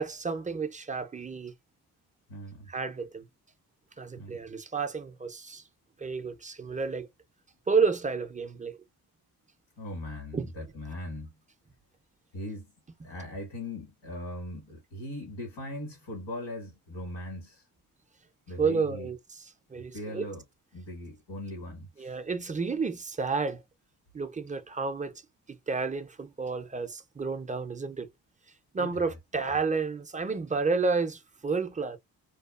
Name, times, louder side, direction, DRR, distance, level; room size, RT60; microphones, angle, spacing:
voice 1, 0.0-1.5 2.7-3.2 4.0-5.6 6.0-7.1 7.7-8.8 10.3-10.5 18.6-19.2 19.7-20.3 22.0-23.6 24.1-25.2 25.5-28.1 28.7-32.0, right 4 dB, 20° right, 0.4 m, -30 dB
voice 2, 2.3-2.7 4.2-4.4 9.8-11.4 12.3-12.7 13.0-17.7 18.5-19.1 19.7-20.4 20.7-22.2 28.8-29.2, left 1 dB, 85° left, 1.5 m, -40 dB
2.6 x 2.3 x 2.3 m
cardioid pair, 75°, 41 cm